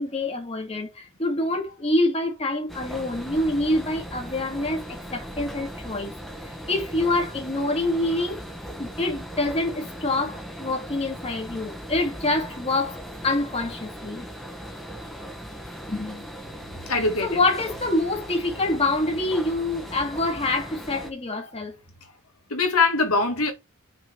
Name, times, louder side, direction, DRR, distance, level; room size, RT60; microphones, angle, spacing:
voice 1, 0.0-6.1 6.7-8.4 8.8-14.2 15.9-16.3 16.9-21.8, left 2 dB, 25° left, 1.9 m, -26 dB
sound 1, 2.7-21.1, equal, ahead, 1.2 m, -38 dB
voice 2, 16.9-17.4 22.5-23.5, left 3 dB, 70° left, 1.9 m, -22 dB
6.2 x 3.9 x 4.6 m
head